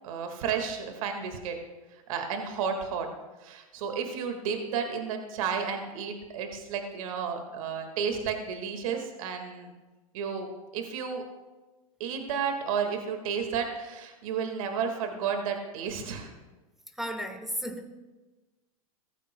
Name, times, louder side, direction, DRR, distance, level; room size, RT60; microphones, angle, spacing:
voice 1, 0.0-1.6 1.9-3.1 3.4-9.7 10.1-10.5 10.7-11.2 12.0-16.3, right 6 dB, 70° right, 5 dB, 1.8 m, -32 dB
voice 2, 17.0-17.9, equal, ahead, 6 dB, 1.3 m, -34 dB
17.0 x 14.5 x 2.2 m, 1.2 s
hypercardioid pair, 105°, 18 cm